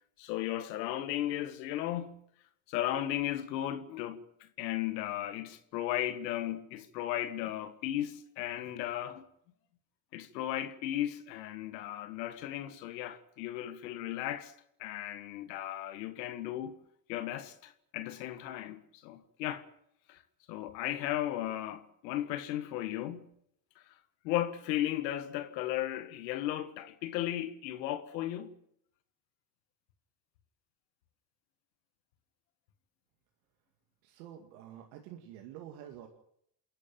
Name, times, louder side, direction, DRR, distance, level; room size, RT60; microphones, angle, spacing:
voice 1, 0.2-2.2 2.7-9.2 10.1-14.5 14.8-16.8 17.1-19.7 20.1-20.2 20.5-23.3 24.2-28.5, left 13 dB, 85° left, 1.7 m, -35 dB
voice 2, 34.0-36.1, right 11 dB, 80° right, 2.3 m, -48 dB
28.0 x 11.5 x 9.2 m
hypercardioid pair, 60°, 50 cm